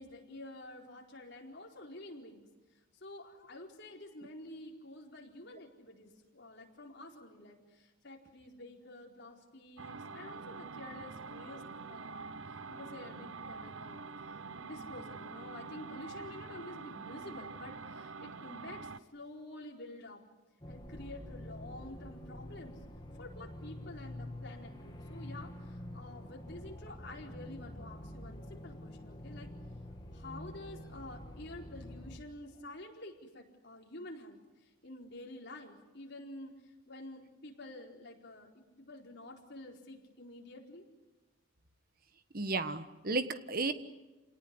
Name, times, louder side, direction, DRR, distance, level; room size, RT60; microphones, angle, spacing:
voice 1, 0.0-2.5 2.9-14.4 14.6-20.2 20.7-22.8 23.2-29.5 30.1-40.8, left 1 dB, 50° left, 0 dB, 4.5 m, -49 dB
sound 1, 9.8-19.0, right 4 dB, 70° right, 0.9 m, -46 dB
sound 2, 20.6-32.2, left 1 dB, 20° left, 2.4 m, -47 dB
voice 2, 42.3-43.7, right 3 dB, 45° right, 11 dB, 1.3 m, -33 dB
29.0 x 18.5 x 9.8 m, 1.1 s
head